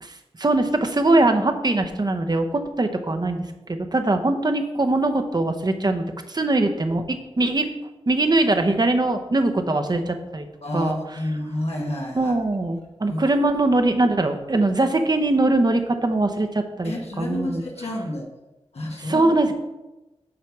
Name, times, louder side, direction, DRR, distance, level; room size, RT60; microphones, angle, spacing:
voice 1, 0.0-7.7 8.1-10.5 10.7-11.0 12.1-17.6 19.0-19.5, right 2 dB, 40° right, 6 dB, 0.9 m, -22 dB
voice 2, 10.6-12.3 13.1-13.2 16.8-18.3 18.7-19.5, left 1 dB, 70° left, -1 dB, 1.4 m, -29 dB
7.7 x 5.7 x 4.7 m, 1.0 s
wide cardioid pair, 65°, 11 cm